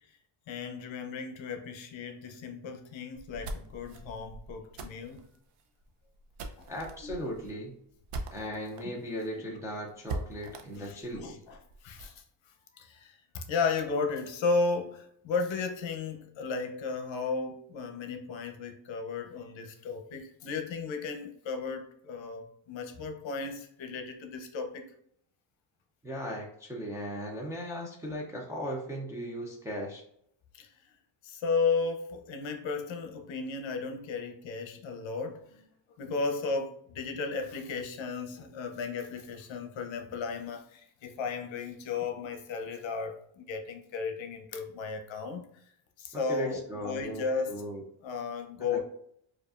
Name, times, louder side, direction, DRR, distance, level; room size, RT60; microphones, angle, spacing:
voice 1, 0.5-5.3 7.0-7.1 8.8-8.9 10.7-11.6 11.8-12.1 12.7-24.8 30.5-30.7 31.2-35.7 36.0-45.5 46.0-47.7 48.0-48.8, left 4 dB, 65° left, 5 dB, 0.7 m, -34 dB
sound 1, 3.1-8.8 9.2-9.3 9.6-9.7 10.1-12.2, right 2 dB, 90° right, 0.7 m, -42 dB
voice 2, 6.7-7.8 8.3-11.4 26.0-30.0 46.1-47.8 48.6-48.8, equal, 5° right, -2 dB, 0.3 m, -37 dB
4.9 x 2.5 x 2.4 m, 0.69 s
wide cardioid pair, 175°, 49 cm